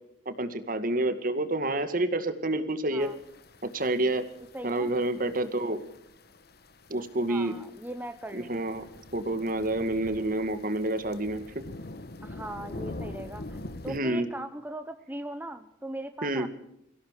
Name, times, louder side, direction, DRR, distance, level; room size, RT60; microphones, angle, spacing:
voice 1, 0.3-3.1 3.6-4.3 4.6-5.8 6.9-7.6 8.3-8.9 9.1-11.6 13.9-14.3 16.2-16.5, right 1 dB, 50° right, 10 dB, 2.2 m, -28 dB
sound 1, 3.0-14.0, left 2 dB, 55° left, 1.4 m, -45 dB
voice 2, 4.5-4.9 7.3-8.5 12.2-16.5, right 1 dB, 10° right, 8 dB, 0.9 m, -39 dB
24.5 x 16.5 x 6.7 m, 0.78 s
head